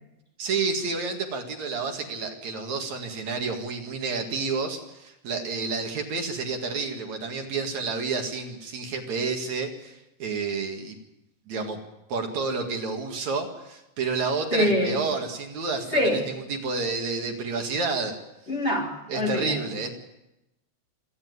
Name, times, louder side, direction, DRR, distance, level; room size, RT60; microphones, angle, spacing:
voice 1, 0.4-11.0 11.5-11.8 12.1-18.1 19.1-19.9, right 4 dB, 70° right, 3 dB, 3.3 m, -30 dB
voice 2, 14.5-15.0 15.9-16.2 18.5-19.6, equal, 20° left, -1 dB, 3.5 m, -24 dB
27.0 x 10.0 x 9.6 m, 0.92 s
omnidirectional pair, 3.4 m